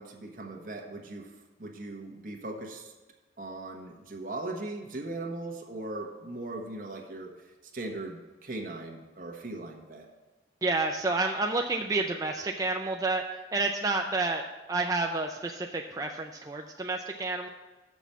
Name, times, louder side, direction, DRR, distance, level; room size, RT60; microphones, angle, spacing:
voice 1, 0.0-1.3 1.6-2.9 3.4-10.1, right 2 dB, 50° right, 2 dB, 1.3 m, -39 dB
voice 2, 10.6-13.2 13.5-14.4 14.7-17.5, right 3 dB, 20° right, 2 dB, 0.4 m, -29 dB
6.8 x 6.2 x 7.3 m, 1.2 s
head